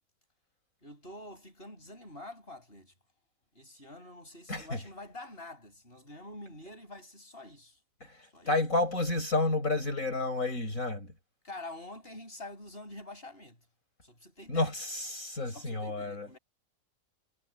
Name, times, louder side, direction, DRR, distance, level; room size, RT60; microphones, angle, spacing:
voice 1, 0.8-2.9 3.5-7.8 8.2-8.5 11.4-13.6 14.0-14.7 15.5-16.4, left 2 dB, 40° left, 8.3 m, -47 dB
voice 2, 4.5-4.8 8.0-11.1 14.5-16.3, left 2 dB, 65° left, 6.6 m, -31 dB
omnidirectional pair, 1.5 m